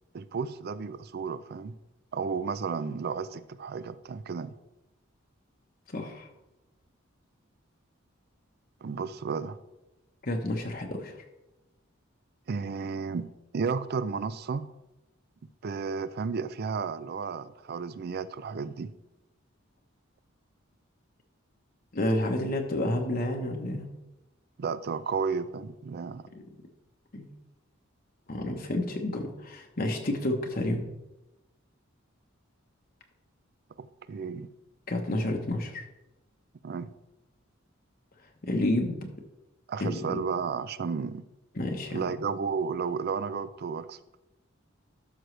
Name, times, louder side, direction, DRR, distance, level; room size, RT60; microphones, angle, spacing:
voice 1, 0.1-1.8 2.1-4.5 8.8-9.6 12.5-14.7 15.6-18.9 24.6-26.3 33.8-34.5 36.6-36.9 39.7-41.2 41.9-44.0, right 5 dB, 50° right, 15 dB, 0.4 m, -33 dB
voice 2, 5.9-6.3 10.2-11.2 21.9-23.9 26.3-26.4 27.1-27.2 28.3-30.8 34.9-35.8 38.4-39.1 39.8-40.2 41.6-42.0, left 1 dB, 45° left, 2 dB, 1.0 m, -30 dB
12.5 x 6.2 x 3.2 m, 0.98 s
head